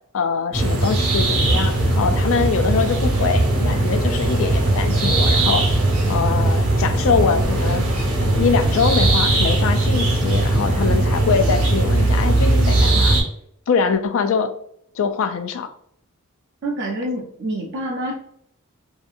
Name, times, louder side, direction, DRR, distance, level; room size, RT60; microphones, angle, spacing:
voice 1, 0.1-5.6 6.1-7.8 8.2-13.2 13.7-14.5 14.9-15.7, left 5 dB, 60° left, 9 dB, 0.3 m, -23 dB
sound 1, 0.5-13.2, right 2 dB, 70° right, 0.9 m, -19 dB
voice 2, 16.6-18.1, right 1 dB, 50° right, -2 dB, 0.5 m, -27 dB
2.7 x 2.6 x 2.4 m, 0.68 s
head